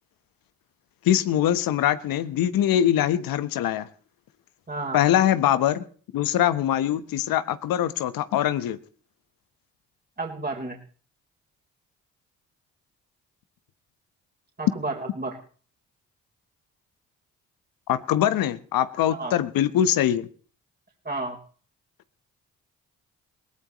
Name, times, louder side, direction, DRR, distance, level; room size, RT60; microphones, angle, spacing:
voice 1, 1.0-3.9 4.9-5.8 6.1-8.8 17.9-20.3, left 11 dB, 75° left, 13 dB, 1.1 m, -23 dB
voice 2, 4.7-5.0 10.2-10.8 14.6-15.4 19.1-19.3 21.0-21.4, right 3 dB, 25° right, 0 dB, 3.8 m, -31 dB
21.5 x 18.5 x 3.1 m, 0.43 s
hypercardioid pair, 50°, 35 cm